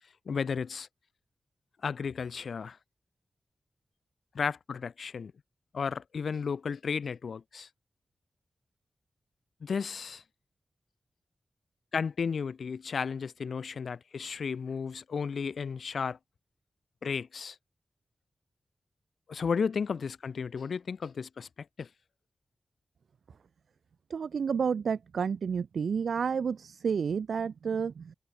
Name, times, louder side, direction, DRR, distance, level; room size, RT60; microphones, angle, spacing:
voice 1, 0.3-0.9 1.8-2.8 4.3-5.3 5.7-7.7 9.6-10.2 11.9-16.2 17.0-17.6 19.3-21.5 21.8-21.9, left 6 dB, 70° left, 2.6 m, -33 dB
voice 2, 24.1-28.1, right 6 dB, 85° right, 0.6 m, -30 dB
wide cardioid pair, 130°, 0 cm